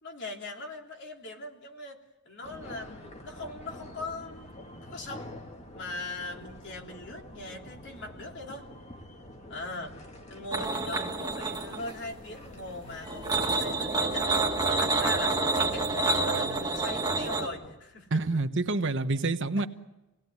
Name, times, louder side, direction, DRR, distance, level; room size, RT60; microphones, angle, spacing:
voice 1, 0.0-2.0 2.2-4.5 4.8-5.3 5.7-8.7 9.5-9.9 10.3-18.2 19.6-19.7, left 2 dB, 55° left, 2 dB, 3.4 m, -40 dB
sound 1, 2.4-17.7, left 1 dB, 30° left, 2.1 m, -47 dB
sound 2, 10.5-12.0 13.1-17.5, right 3 dB, 20° right, 1.9 m, -28 dB
sound 3, 12.8-17.9, right 2 dB, 80° left, 4.1 m, -50 dB
voice 2, 18.1-19.7, right 2 dB, 55° right, 8 dB, 1.2 m, -27 dB
27.5 x 18.5 x 9.6 m, 1.0 s
head